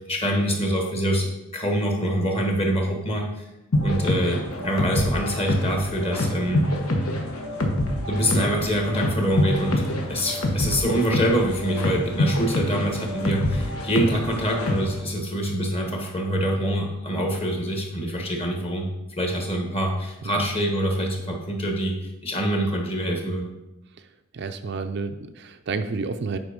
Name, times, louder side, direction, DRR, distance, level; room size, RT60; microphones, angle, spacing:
voice 1, 0.1-3.4 3.8-6.7 8.1-18.9 19.2-21.9 22.2-23.5, equal, 25° left, 1 dB, 1.4 m, -25 dB
sound 1, 3.7-15.0, left 1 dB, 80° left, 1.3 m, -26 dB
voice 2, 24.3-26.4, right 4 dB, 50° right, 8 dB, 0.4 m, -30 dB
7.9 x 5.1 x 5.2 m, 0.94 s
head